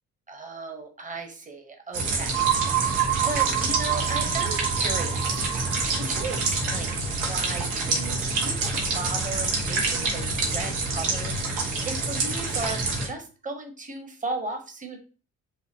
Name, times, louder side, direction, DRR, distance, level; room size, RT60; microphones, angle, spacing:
voice 1, 0.3-2.5 2.8-15.0, right 3 dB, 25° right, 5 dB, 1.1 m, -36 dB
sound 1, 1.9-13.1, right 3 dB, 85° right, 1.3 m, -27 dB
sound 2, 2.3-8.0, right 14 dB, 70° right, 0.5 m, -29 dB
5.3 x 2.2 x 3.6 m, 0.37 s
cardioid pair, 90°, 30 cm